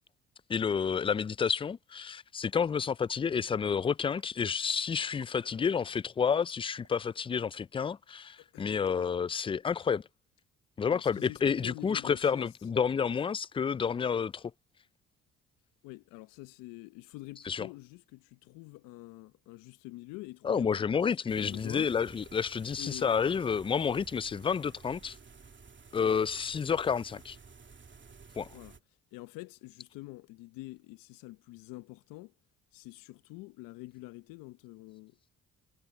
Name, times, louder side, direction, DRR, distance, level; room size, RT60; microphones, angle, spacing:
voice 1, 0.5-10.0 10.8-14.4 17.5-17.7 20.4-25.2 25.9-27.4 28.4-28.5, left 6 dB, 15° left, 0.3 m, -30 dB
sound 1, 2.0-2.1 2.6-7.9, right 9 dB, 60° right, 5.3 m, -66 dB
voice 2, 8.4-8.9 10.9-12.5 15.8-20.9 21.4-21.9 22.8-23.1 28.5-28.8 29.1-32.3 32.7-35.2, left 20 dB, 80° left, 1.1 m, -46 dB
sound 2, 21.3-28.8, right 5 dB, 35° right, 2.6 m, -53 dB
hypercardioid pair, 55°, 33 cm